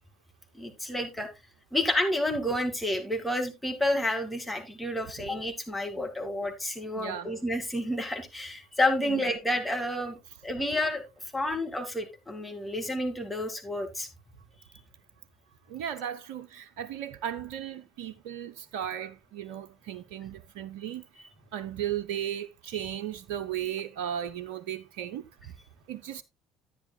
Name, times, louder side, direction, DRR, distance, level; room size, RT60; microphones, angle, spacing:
voice 1, 0.6-1.3 1.7-10.2 10.4-11.0 11.3-14.1, left 1 dB, 10° left, 2.3 m, -30 dB
voice 2, 6.9-7.3 9.0-9.2 15.7-21.0 21.5-25.2 25.9-26.2, right 10 dB, 65° right, 0.5 m, -36 dB
10.5 x 9.7 x 2.3 m
figure-of-eight pair, 55°, 0 cm